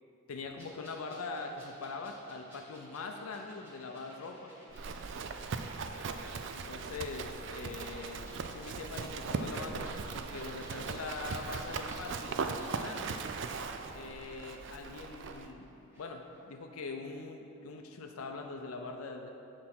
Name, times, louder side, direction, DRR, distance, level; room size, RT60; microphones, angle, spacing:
voice 1, 0.3-4.5 6.5-12.4 12.8-13.1 13.9-19.3, left 3 dB, 80° left, 3 dB, 0.5 m, -42 dB
sound 1, 0.6-16.1 16.3-16.4, equal, 10° right, 1.7 m, -57 dB
Livestock farm animals working animals, 4.7-15.5, right 4 dB, 55° right, 0.4 m, -39 dB
7.7 x 4.2 x 6.0 m, 3.0 s
head